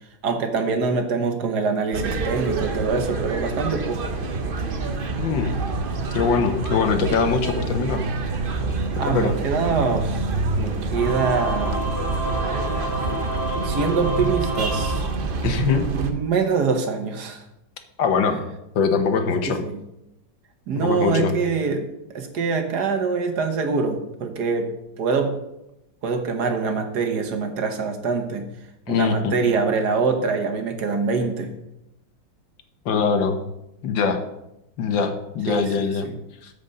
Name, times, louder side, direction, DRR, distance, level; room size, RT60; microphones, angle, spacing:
voice 1, 0.2-4.1 9.0-10.3 10.6-11.9 13.6-15.1 15.9-17.4 18.4-18.5 19.4-19.8 20.7-25.4 26.0-28.5 28.9-31.6 35.5-36.2, right 4 dB, 60° right, 6 dB, 1.6 m, -24 dB
sound 1, 1.9-16.1, right 3 dB, 45° right, 0.7 m, -27 dB
voice 2, 5.2-5.6 6.1-8.0 9.1-9.3 15.4-15.8 18.0-18.4 18.7-19.6 20.8-21.4 28.9-29.3 32.8-33.4 33.8-34.2 34.8-36.1 36.4-36.5, left 5 dB, 75° left, 7 dB, 1.7 m, -22 dB
Singing / Musical instrument, 10.9-15.8, right 1 dB, 20° left, 2.2 m, -30 dB
13.5 x 5.2 x 5.3 m, 0.88 s
omnidirectional pair, 2.1 m